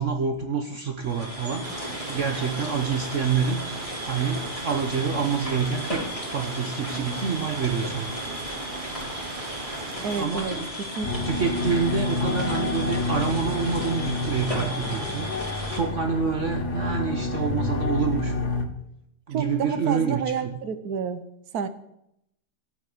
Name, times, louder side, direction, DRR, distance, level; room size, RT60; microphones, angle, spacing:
voice 1, 0.0-1.6 2.1-3.6 4.0-8.1 10.2-10.7 11.2-18.4 19.3-20.5, right 6 dB, 55° right, 5 dB, 1.3 m, -27 dB
sound 1, 1.0-15.8, left 1 dB, 20° left, 4.2 m, -35 dB
sound 2, 1.6-10.3, right 4 dB, 35° right, 1.1 m, -38 dB
voice 2, 10.0-10.6 11.0-11.1 19.3-21.2 21.5-21.7, right 7 dB, 70° right, 12 dB, 1.5 m, -29 dB
sound 3, 11.0-18.7, left 3 dB, 75° left, 2.0 m, -28 dB
14.0 x 7.1 x 8.4 m, 0.78 s
omnidirectional pair, 1.7 m